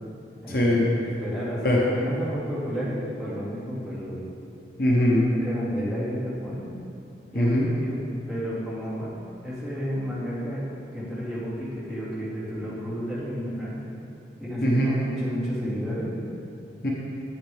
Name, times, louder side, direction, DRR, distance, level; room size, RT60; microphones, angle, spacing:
voice 1, 0.5-0.9 1.6-1.8 4.8-5.3 7.3-7.7 14.6-14.9 16.8-16.9, left 1 dB, 55° left, -4 dB, 1.1 m, -21 dB
voice 2, 1.0-4.2 5.4-6.7 7.3-7.5 7.8-8.0 8.3-9.1 9.4-10.7 10.9-13.8 14.4-16.1, equal, ahead, -11 dB, 2.3 m, -31 dB
8.7 x 8.7 x 3.6 m, 2.6 s
head